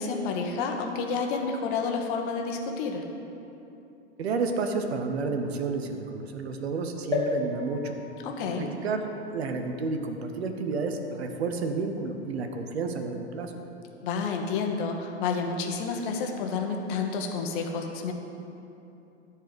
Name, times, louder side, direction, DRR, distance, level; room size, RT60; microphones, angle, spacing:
voice 1, 0.0-3.0 8.2-8.7 14.0-18.1, left 5 dB, 50° left, 3 dB, 1.4 m, -30 dB
voice 2, 4.2-7.9 8.5-13.5, right 4 dB, 65° right, 5 dB, 1.1 m, -31 dB
sound 1, 7.1-10.8 11.4-11.5 11.7-11.8, left 4 dB, 10° left, 1.7 m, -35 dB
13.0 x 4.6 x 7.9 m, 2.8 s
figure-of-eight pair, 95°, 34 cm